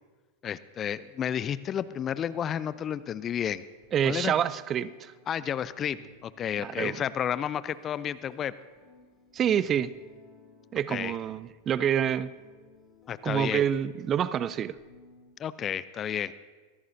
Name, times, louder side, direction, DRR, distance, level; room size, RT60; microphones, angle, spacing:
voice 1, 0.4-3.6 4.0-4.3 5.3-8.5 10.9-11.1 13.1-13.6 15.4-16.3, left 9 dB, 30° left, 17 dB, 0.5 m, -31 dB
sound 1, 1.6-15.3, left 3 dB, 15° left, 5.4 m, -58 dB
voice 2, 3.9-5.1 6.6-7.0 9.3-9.9 10.7-12.3 13.2-14.8, right 9 dB, 30° right, 17 dB, 0.5 m, -27 dB
22.5 x 16.0 x 2.8 m, 1.3 s
figure-of-eight pair, 90°, 0 cm